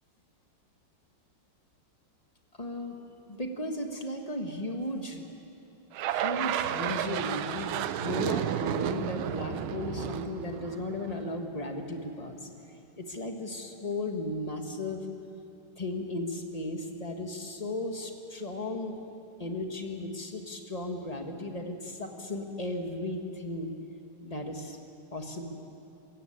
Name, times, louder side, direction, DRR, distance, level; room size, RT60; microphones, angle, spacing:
voice 1, 2.6-3.0 3.3-5.3 6.1-12.5 12.9-15.0 15.8-19.0 19.4-23.7 24.2-24.8 25.1-25.5, left 1 dB, 20° left, 3 dB, 1.3 m, -35 dB
sound 1, 5.9-11.3, right 11 dB, 75° right, 1.5 m, -32 dB
23.5 x 14.5 x 8.8 m, 2.7 s
omnidirectional pair, 2.4 m